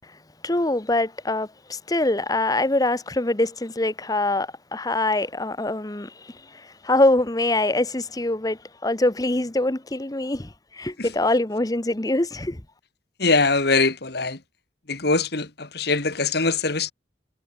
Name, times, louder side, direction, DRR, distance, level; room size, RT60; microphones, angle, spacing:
voice 1, 0.4-6.1 6.8-10.5 10.8-12.6, left 2 dB, 20° left, 0.9 m, -23 dB
voice 2, 13.2-14.4 14.9-16.9, left 3 dB, 55° left, 2.2 m, -22 dB
head